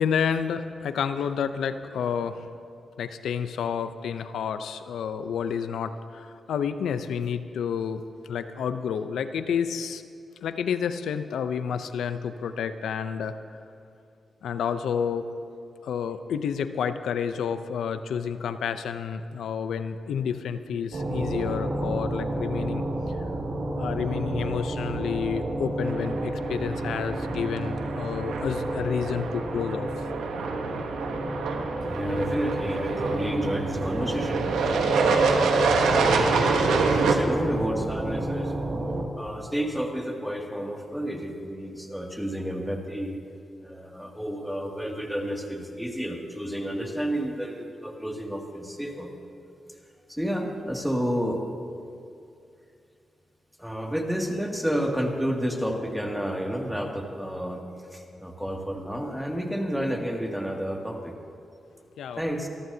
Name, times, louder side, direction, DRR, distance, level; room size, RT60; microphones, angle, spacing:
voice 1, 0.0-2.5 3.0-10.0 10.4-13.4 14.4-15.3 15.8-22.8 23.8-30.1 62.0-62.2, left 7 dB, 85° left, 10 dB, 0.6 m, -30 dB
sound 1, 20.9-39.0, right 1 dB, 60° right, 2.1 m, -31 dB
sound 2, 25.8-37.1, right 4 dB, 90° right, 1.1 m, -27 dB
voice 2, 31.9-34.9 35.3-38.5 39.2-43.2 43.6-49.1 49.7-49.8 50.1-51.4 53.6-57.6 57.9-61.1 62.2-62.5, equal, ahead, 1 dB, 2.3 m, -30 dB
24.0 x 14.0 x 2.8 m, 2.5 s
cardioid pair, 55°, 0 cm